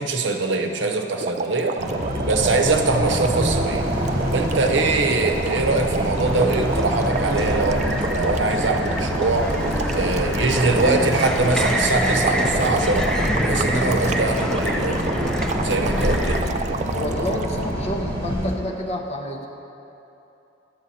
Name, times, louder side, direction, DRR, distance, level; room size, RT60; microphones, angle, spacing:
voice 1, 0.0-1.7 2.3-3.8 4.2-9.5 9.9-13.1 13.4-15.0 15.6-16.5, right 3 dB, 75° right, 4 dB, 0.8 m, -22 dB
sound 1, 1.2-17.6, right 4 dB, 40° right, 0.3 m, -30 dB
sound 2, 1.8-18.5, equal, 55° right, 1.4 m, -26 dB
sound 3, 6.2-16.4, equal, 5° left, 0.6 m, -26 dB
voice 2, 16.9-19.5, equal, 35° left, 1 dB, 0.9 m, -28 dB
11.5 x 7.6 x 4.2 m, 2.9 s
head